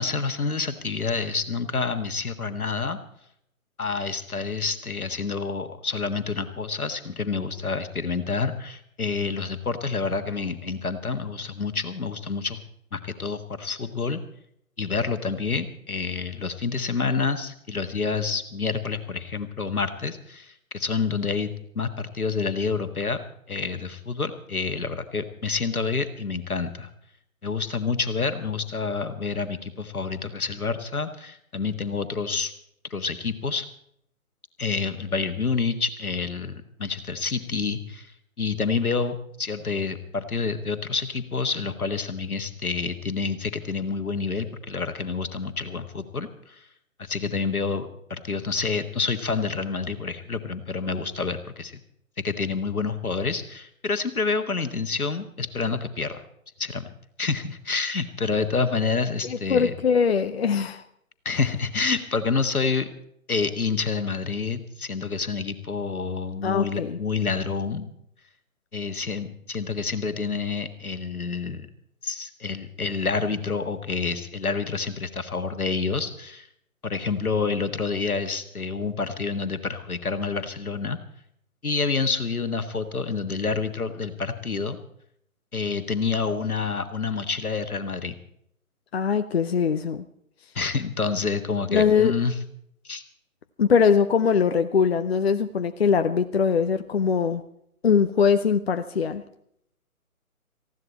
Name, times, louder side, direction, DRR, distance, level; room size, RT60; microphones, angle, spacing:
voice 1, 0.0-3.0 3.8-12.6 12.9-14.2 14.8-23.2 23.5-26.9 27.4-32.5 32.9-33.6 34.6-38.1 38.4-46.6 47.0-51.7 52.2-56.2 56.6-56.9 57.2-59.7 61.2-62.9 63.3-67.9 68.7-71.7 72.0-76.5 76.8-81.0 81.6-84.8 85.5-88.2 90.5-92.3 92.8-93.0, left 4 dB, 80° left, 9 dB, 1.6 m, -28 dB
voice 2, 59.2-60.8 66.4-67.0 88.9-90.0 91.7-92.1 93.6-97.4 97.8-99.2, left 6 dB, 45° left, 10 dB, 0.7 m, -22 dB
19.0 x 15.0 x 4.3 m, 0.71 s
figure-of-eight pair, 140°, 43 cm